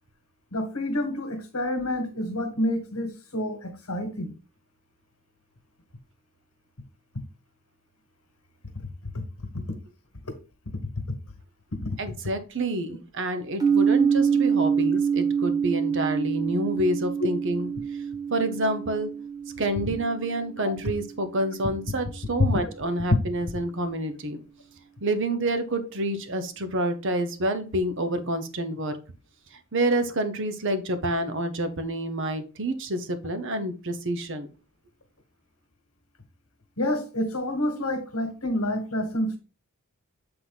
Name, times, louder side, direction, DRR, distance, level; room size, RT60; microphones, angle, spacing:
voice 1, 0.5-4.3 9.1-9.2 11.8-12.0 17.2-17.3 36.8-39.4, left 1 dB, 75° left, 1.5 m, -28 dB
voice 2, 12.0-17.7 18.3-19.1 19.6-24.4 25.0-28.9 29.7-34.5, right 1 dB, 55° right, 0.9 m, -28 dB
sound 1, 13.6-21.4, right 7 dB, 15° right, 1.1 m, -26 dB
7.7 x 3.8 x 4.0 m
head